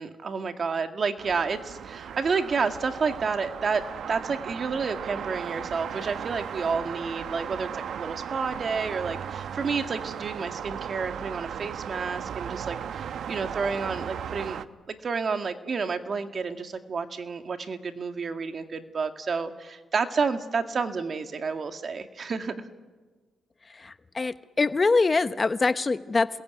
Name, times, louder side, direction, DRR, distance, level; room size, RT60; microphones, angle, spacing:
voice 1, 0.0-14.6 14.9-22.7, right 5 dB, 50° right, 7 dB, 2.0 m, -30 dB
sound 1, 1.2-14.6, right 8 dB, 70° right, 0.9 m, -36 dB
voice 2, 23.7-26.4, left 3 dB, 30° left, 12 dB, 1.0 m, -24 dB
28.0 x 21.0 x 9.4 m, 1.4 s
cardioid pair, 75°, 0 cm